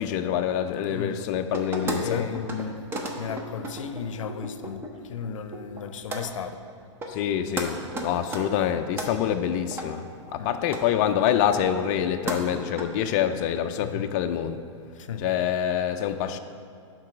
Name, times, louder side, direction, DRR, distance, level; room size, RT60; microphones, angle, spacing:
voice 1, 0.0-2.2 7.1-10.0 10.3-14.6 15.2-16.4, left 9 dB, 35° left, 0.4 m, -26 dB
voice 2, 0.9-1.3 2.0-2.7 3.2-6.6 10.4-10.5 13.8-14.1 15.0-15.3, left 7 dB, 85° left, 0.5 m, -34 dB
sound 1, 1.5-2.0 2.3-2.6 2.9-4.9 5.2-5.8 6.1-6.2 6.7-6.8 7.0-7.3 7.6-7.7 7.9-9.1 9.7-9.9 10.3-10.4 10.6-10.8 11.3-12.0 12.3-12.8, right 1 dB, 15° right, 0.7 m, -33 dB
11.0 x 4.0 x 4.9 m
hypercardioid pair, 145°, 16 cm